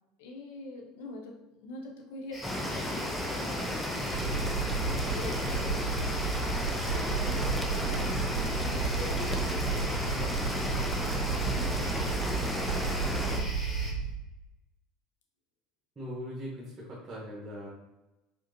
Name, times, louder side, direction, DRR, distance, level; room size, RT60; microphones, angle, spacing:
voice 1, 0.2-10.6 10.9-13.0 13.3-13.9, left 2 dB, 65° left, 1 dB, 0.8 m, -46 dB
sound 1, 2.3-13.9, left 1 dB, 20° left, 1.3 m, -41 dB
sound 2, 2.4-13.4, left 1 dB, 5° left, 0.6 m, -33 dB
sound 3, 4.1-14.1, right 5 dB, 80° right, 0.5 m, -32 dB
voice 2, 15.9-17.7, equal, 20° right, -5 dB, 1.2 m, -41 dB
5.0 x 3.7 x 2.8 m, 1.0 s
figure-of-eight pair, 70°, 0 cm